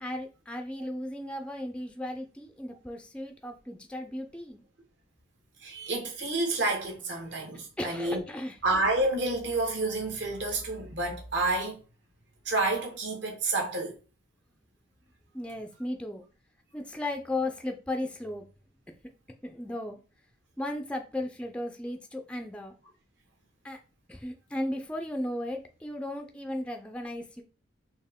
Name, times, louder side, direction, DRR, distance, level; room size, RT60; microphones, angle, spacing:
voice 1, 0.0-4.6 7.8-8.6 15.3-16.2 16.7-18.4 19.4-20.0 20.6-22.7 23.6-23.8 24.1-27.4, left 1 dB, 5° left, 0.4 m, -35 dB
voice 2, 5.6-8.2 8.6-11.8 12.4-13.9, right 2 dB, 60° right, 1.4 m, -29 dB
4.3 x 2.9 x 3.5 m
head